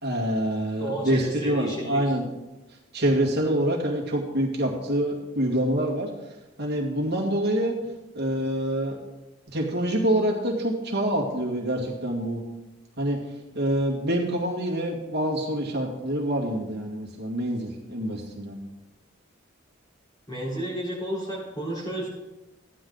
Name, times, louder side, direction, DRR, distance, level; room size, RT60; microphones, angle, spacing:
voice 1, 0.0-2.2 2.9-6.1 6.6-7.7 8.1-9.0 9.5-12.4 13.0-13.2 13.5-18.6, right 1 dB, 55° right, -3 dB, 2.2 m, -26 dB
voice 2, 0.8-2.0 20.3-22.1, right 1 dB, 20° left, -5 dB, 4.2 m, -32 dB
14.5 x 10.0 x 4.0 m, 1.0 s
head